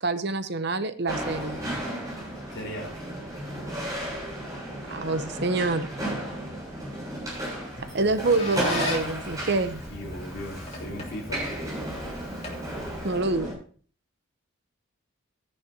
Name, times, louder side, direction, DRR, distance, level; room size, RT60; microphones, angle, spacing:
voice 1, 0.0-1.6 4.9-5.9 7.8-9.8 13.0-13.5, right 3 dB, 50° right, 11 dB, 0.8 m, -26 dB
sound 1, 1.1-13.5, right 1 dB, 15° right, 6.8 m, -34 dB
voice 2, 2.5-2.9 7.9-8.5 9.9-11.5, equal, 55° left, -1 dB, 3.8 m, -38 dB
Squeak, 7.9-13.3, left 2 dB, 30° left, 2.6 m, -39 dB
13.5 x 10.5 x 2.9 m, 0.43 s
head